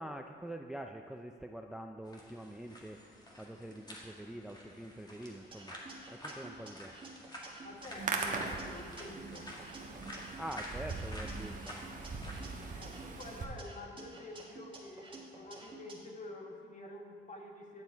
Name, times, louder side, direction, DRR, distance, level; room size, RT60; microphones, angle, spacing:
voice 1, 0.0-5.7 6.1-6.9 10.3-11.8, right 1 dB, 5° right, 4 dB, 0.4 m, -45 dB
sound 1, 2.0-12.7, left 1 dB, 20° left, 1.9 m, -50 dB
sound 2, 5.5-7.9 8.2-10.6 10.9-13.2 13.6-15.9, right 3 dB, 25° right, 1.8 m, -51 dB
voice 2, 7.6-9.5 12.7-17.8, left 2 dB, 40° left, 2 dB, 1.5 m, -48 dB
Hands, 7.8-13.4, right 4 dB, 40° right, 1.2 m, -40 dB
10.0 x 6.9 x 4.6 m, 2.1 s
cardioid pair, 90°, 20 cm